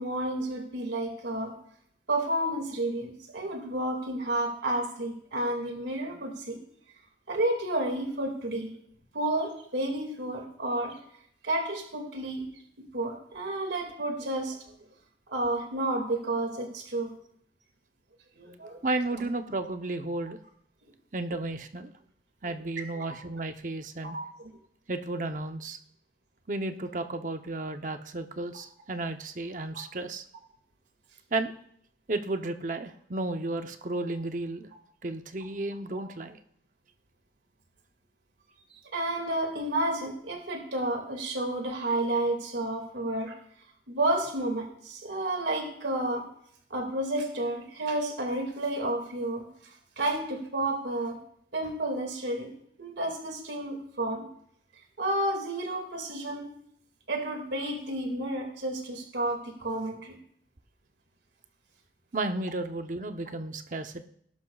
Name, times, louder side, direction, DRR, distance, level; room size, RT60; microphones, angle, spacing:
voice 1, 0.0-1.6 2.1-6.6 7.3-8.7 9.1-11.0 11.4-12.4 12.8-14.6 15.3-17.1 18.4-18.8 22.5-22.6 24.0-24.5 36.0-36.1 38.9-43.3 43.9-46.3 46.7-49.5 50.0-51.2 51.5-52.5 52.8-54.3 55.0-56.5 57.1-60.2, right 1 dB, 80° right, 3 dB, 2.2 m, -31 dB
voice 2, 18.8-20.4 21.1-21.9 22.4-24.2 24.9-25.8 26.5-30.2 31.3-31.5 32.1-34.7 35.0-36.4 62.1-64.1, right 2 dB, 45° right, 7 dB, 0.8 m, -33 dB
18.0 x 11.5 x 2.4 m, 0.67 s
head